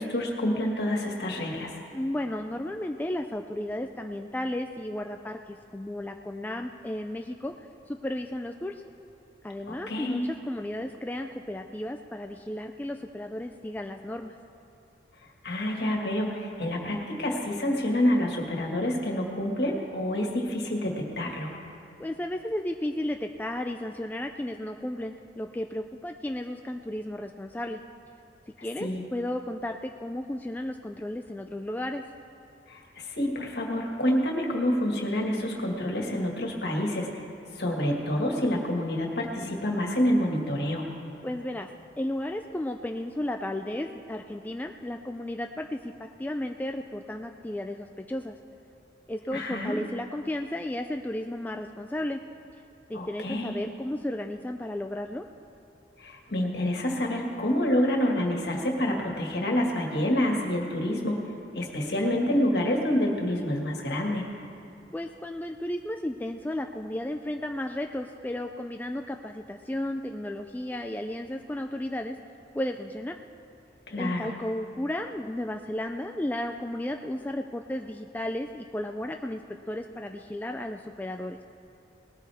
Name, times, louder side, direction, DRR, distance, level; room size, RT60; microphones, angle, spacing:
voice 1, 0.0-1.7 9.7-10.2 15.4-21.5 28.8-29.0 32.7-32.8 33.1-37.1 37.6-40.9 49.3-49.8 52.9-53.5 56.0-61.2 61.5-64.3 73.9-74.3, left 1 dB, 65° left, 0 dB, 1.9 m, -27 dB
voice 2, 1.9-7.5 7.9-8.8 9.4-14.4 22.0-27.8 28.6-32.0 41.2-41.7 42.0-45.9 46.2-48.3 49.1-52.2 52.9-55.3 64.9-72.2 72.5-73.1 74.0-79.4 79.7-81.4, left 1 dB, 10° left, 4 dB, 0.3 m, -33 dB
19.5 x 13.5 x 3.5 m, 2.7 s
head